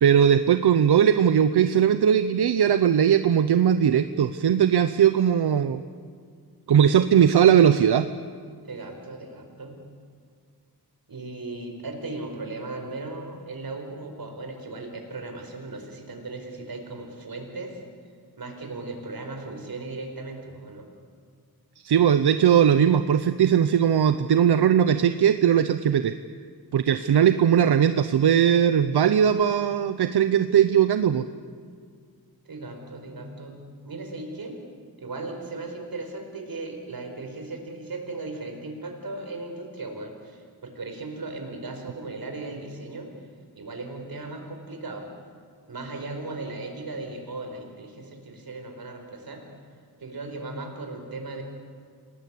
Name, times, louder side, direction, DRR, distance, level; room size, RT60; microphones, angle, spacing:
voice 1, 0.0-5.8 6.7-8.1 21.8-26.1 26.7-31.3, right 9 dB, 85° right, 10 dB, 0.8 m, -19 dB
voice 2, 8.6-9.8 11.1-17.8 18.4-20.8 26.8-27.3 32.4-33.6 33.8-34.6 35.0-43.1 43.5-45.0 45.7-49.4 50.0-51.4, right 2 dB, 65° right, 3 dB, 5.0 m, -37 dB
27.5 x 18.5 x 8.5 m, 2.1 s
wide cardioid pair, 105°, 38 cm